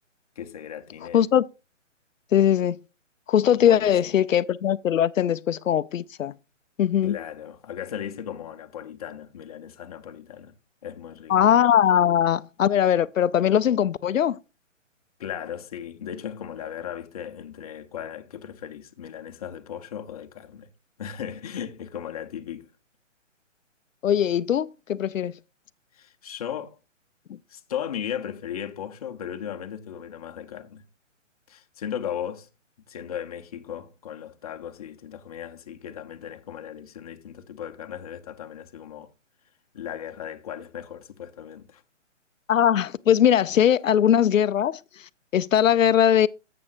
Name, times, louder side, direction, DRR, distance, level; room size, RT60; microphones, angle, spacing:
voice 1, 0.4-1.2 3.6-4.2 7.0-10.5 10.8-11.4 15.2-20.7 21.0-22.7 25.9-26.8 27.5-30.8 31.5-32.5 32.9-39.1 39.7-41.8, left 9 dB, 30° left, 0.8 m, -36 dB
voice 2, 2.3-2.8 3.3-6.3 6.8-7.2 11.3-14.4 24.0-25.3 42.5-46.3, left 10 dB, 85° left, 0.5 m, -20 dB
12.0 x 7.7 x 2.6 m
hypercardioid pair, 150°, 38 cm